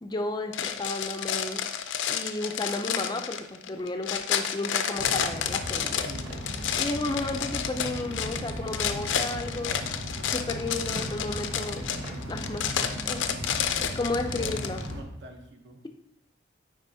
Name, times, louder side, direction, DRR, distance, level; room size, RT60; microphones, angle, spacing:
voice 1, 0.0-1.6 2.1-6.0 6.8-9.8 10.3-11.8 12.3-14.8, left 2 dB, 20° left, 5 dB, 0.4 m, -33 dB
sound 1, 0.5-14.9, left 8 dB, 85° left, 0.5 m, -30 dB
sound 2, 5.0-15.0, equal, 90° right, 1.0 m, -37 dB
sound 3, 6.1-13.2, equal, 25° right, 1.1 m, -48 dB
voice 2, 6.1-6.4 14.4-15.9, right 2 dB, 60° right, 4 dB, 0.9 m, -45 dB
8.9 x 4.8 x 2.7 m, 0.78 s
head